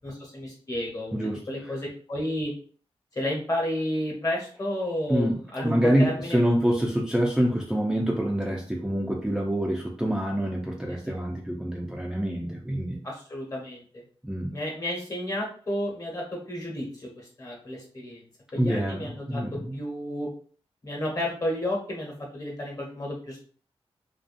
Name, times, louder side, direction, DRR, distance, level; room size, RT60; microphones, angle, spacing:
voice 1, 0.0-2.5 3.1-6.4 10.9-11.2 13.0-14.0 14.5-18.2 18.5-20.3 20.8-23.4, left 1 dB, 35° left, -1 dB, 1.1 m, -32 dB
voice 2, 1.1-1.7 5.1-13.0 14.2-14.5 18.5-19.8, equal, 5° right, -2 dB, 0.4 m, -26 dB
2.5 x 2.3 x 2.5 m, 0.44 s
wide cardioid pair, 95°, 11 cm